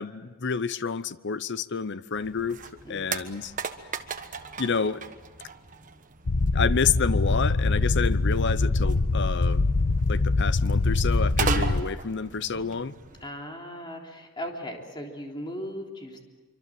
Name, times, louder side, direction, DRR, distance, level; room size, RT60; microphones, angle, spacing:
voice 1, 0.0-2.6 2.9-3.5 4.6-5.1 6.5-9.6 10.1-12.9, left 5 dB, 55° left, 0.8 m, -29 dB
sound 1, 2.2-13.3, right 5 dB, 40° right, 1.4 m, -37 dB
sound 2, 6.3-11.8, left 3 dB, 90° left, 1.0 m, -23 dB
voice 2, 13.2-16.2, equal, 20° left, 3.5 m, -37 dB
25.5 x 25.0 x 7.7 m
head